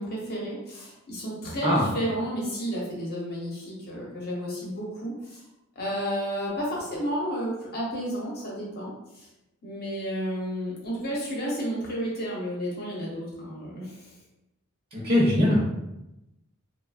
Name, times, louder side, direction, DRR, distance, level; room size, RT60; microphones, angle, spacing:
voice 1, 0.0-5.4 5.8-9.3 9.6-14.1, equal, 45° left, -4 dB, 0.9 m, -32 dB
voice 2, 14.9-15.8, left 1 dB, 30° right, -6 dB, 0.6 m, -22 dB
3.1 x 2.1 x 2.3 m, 0.92 s
head